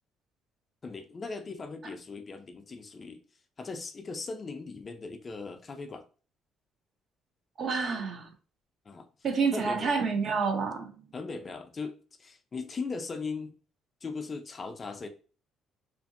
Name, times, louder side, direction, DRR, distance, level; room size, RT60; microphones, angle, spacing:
voice 1, 0.8-3.2 3.6-6.0 8.9-9.1 9.5-10.1 11.1-13.5 14.0-15.1, left 4 dB, 25° left, 0.3 m, -38 dB
voice 2, 7.6-8.3 9.2-11.0, right 5 dB, 45° right, 0.6 m, -28 dB
2.7 x 2.5 x 2.5 m
cardioid pair, 140°, 0 cm